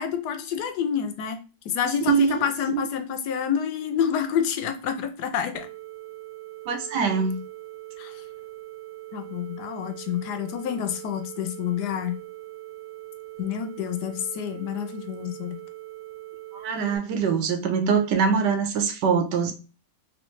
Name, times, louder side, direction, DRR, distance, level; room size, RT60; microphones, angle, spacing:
voice 1, 0.0-1.4 1.6-5.7 8.0-8.2 9.1-12.2 13.4-15.6, left 8 dB, 75° left, 7 dB, 1.2 m, -28 dB
voice 2, 2.1-2.4 2.7-2.8 6.7-7.4 16.5-19.5, right 6 dB, 90° right, 6 dB, 1.4 m, -23 dB
sound 1, 5.5-17.0, right 17 dB, 65° right, 1.1 m, -41 dB
3.3 x 3.1 x 3.1 m, 0.32 s
omnidirectional pair, 1.8 m